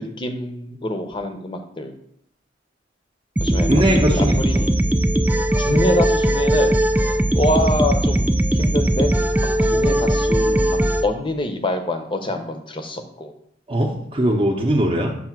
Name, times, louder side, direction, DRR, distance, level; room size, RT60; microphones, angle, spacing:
voice 1, 0.0-1.9 3.4-3.8 4.1-4.8 5.6-6.8 7.1-9.1 9.6-13.3, left 1 dB, 25° left, 6 dB, 0.7 m, -25 dB
sound 1, 3.4-11.0, right 1 dB, 10° right, 0.3 m, -19 dB
voice 2, 3.7-4.4 13.7-15.2, right 1 dB, 30° right, 0 dB, 0.7 m, -20 dB
7.7 x 2.7 x 5.9 m, 0.74 s
head